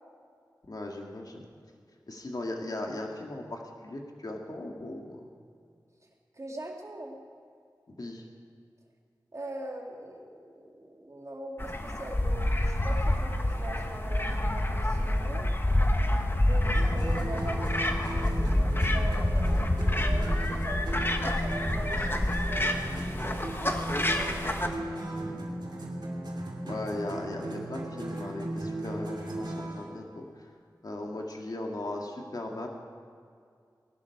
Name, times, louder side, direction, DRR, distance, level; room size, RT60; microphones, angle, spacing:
voice 1, 0.6-1.5 2.1-5.3 7.9-8.2 26.6-30.3 30.8-32.7, left 2 dB, 60° left, 1 dB, 1.9 m, -38 dB
voice 2, 6.4-7.2 9.3-15.5 16.4-17.7 18.0-24.6, right 1 dB, 45° right, 0 dB, 2.5 m, -42 dB
sound 1, 11.6-24.7, left 1 dB, 30° left, 1.2 m, -27 dB
sound 2, 16.7-29.9, right 1 dB, 80° right, 2.6 m, -36 dB
19.5 x 11.5 x 4.8 m, 2.3 s
wide cardioid pair, 50°, 8 cm